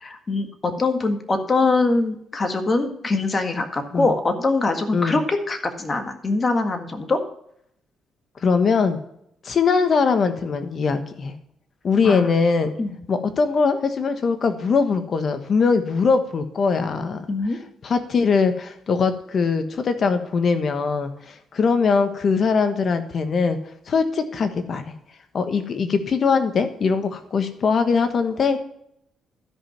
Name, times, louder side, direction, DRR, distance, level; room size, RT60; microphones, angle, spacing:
voice 1, 0.0-7.2 12.0-12.3 12.8-13.0 17.3-17.6, left 3 dB, 30° left, 6 dB, 1.7 m, -23 dB
voice 2, 8.4-9.0 9.4-11.3 11.8-12.8 13.1-17.2 17.8-23.6 23.9-24.8 25.3-28.6, left 5 dB, 50° left, 8 dB, 1.3 m, -21 dB
12.5 x 5.4 x 5.8 m, 0.72 s
cardioid pair, 90°, 0 cm